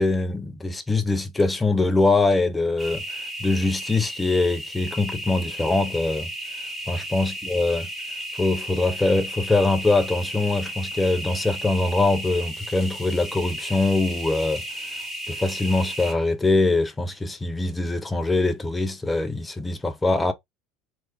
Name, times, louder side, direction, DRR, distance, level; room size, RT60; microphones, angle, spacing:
voice 1, 0.0-6.3 6.9-7.9 8.3-14.6 15.3-20.3, left 2 dB, 15° left, 0.7 m, -23 dB
sound 1, 2.8-16.1, right 1 dB, 5° right, 1.4 m, -34 dB
3.3 x 2.9 x 2.8 m
figure-of-eight pair, 70°, 0 cm